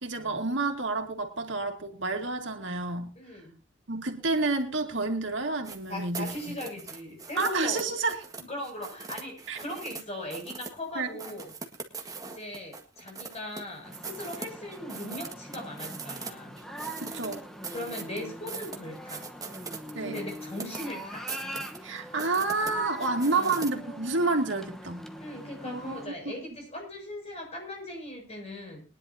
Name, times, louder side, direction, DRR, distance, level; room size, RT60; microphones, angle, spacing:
voice 1, 0.0-3.1 3.9-6.6 7.4-8.2 9.5-9.6 11.0-11.1 17.0-17.4 20.0-20.2 21.8-25.1 25.6-26.1, right 3 dB, 75° right, 4 dB, 2.3 m, -29 dB
voice 2, 3.2-3.5 5.9-7.8 8.4-11.5 12.3-16.6 17.7-19.3 20.0-21.3 23.0-23.5 25.2-28.8, left 1 dB, 35° left, 1 dB, 7.1 m, -39 dB
sound 1, 5.6-10.0 10.3-10.8 11.2-13.6 13.9-16.3 16.6-23.7, right 4 dB, 20° right, 1.7 m, -41 dB
sound 2, 13.8-26.1, equal, ahead, 1.1 m, -42 dB
22.5 x 10.5 x 2.8 m, 0.28 s
head